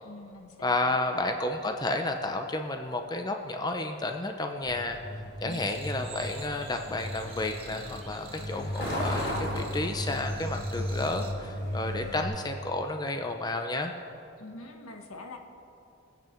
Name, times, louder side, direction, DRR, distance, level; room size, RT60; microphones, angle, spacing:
voice 1, 0.0-1.0 5.4-5.7 14.4-15.4, left 2 dB, 90° left, 3 dB, 1.4 m, -45 dB
voice 2, 0.6-5.0 5.4-13.9, left 2 dB, 20° left, 5 dB, 0.6 m, -31 dB
Truck, 4.6-12.2, left 1 dB, 50° left, 2.7 m, -35 dB
sound 1, 5.5-11.3, right 5 dB, 25° right, 1.3 m, -48 dB
23.0 x 8.6 x 4.5 m, 2.7 s
head